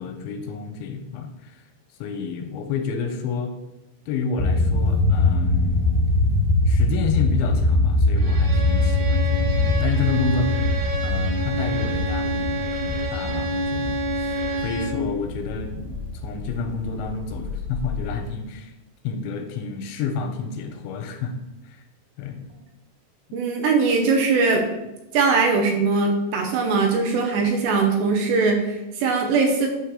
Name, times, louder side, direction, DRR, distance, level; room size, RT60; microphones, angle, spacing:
voice 1, 0.0-1.6 2.0-3.5 4.1-5.8 6.7-10.6 11.0-18.7 19.0-21.4 21.6-21.8 22.2-22.4, left 5 dB, 90° left, 6 dB, 3.0 m, -30 dB
sound 1, 4.4-18.3, left 2 dB, 10° right, 0.4 m, -23 dB
Bowed string instrument, 8.2-15.1, equal, 60° right, 2.0 m, -29 dB
voice 2, 23.3-24.7 25.1-29.7, right 4 dB, 75° right, 2 dB, 2.7 m, -21 dB
8.9 x 3.2 x 6.4 m, 0.97 s
omnidirectional pair, 5.4 m